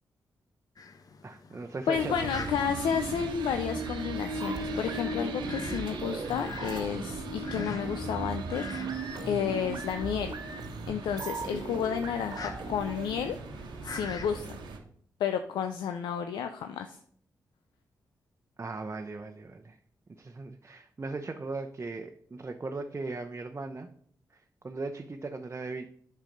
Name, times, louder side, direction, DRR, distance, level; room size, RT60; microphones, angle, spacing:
Fowl, 0.8-14.5, left 4 dB, 55° left, 0.9 m, -47 dB
voice 1, 1.2-2.5 18.6-19.8 20.2-23.9 24.6-25.9, right 3 dB, 35° right, 4 dB, 0.8 m, -38 dB
voice 2, 1.9-8.6 9.3-10.4 10.9-13.4 13.8-14.5 15.2-17.0, left 8 dB, 90° left, 7 dB, 0.5 m, -31 dB
sound 1, 1.9-14.8, right 2 dB, 90° right, 1.2 m, -38 dB
sound 2, 4.4-13.5, right 3 dB, 60° right, 1.3 m, -41 dB
9.0 x 5.7 x 5.3 m, 0.62 s
cardioid pair, 55°, 8 cm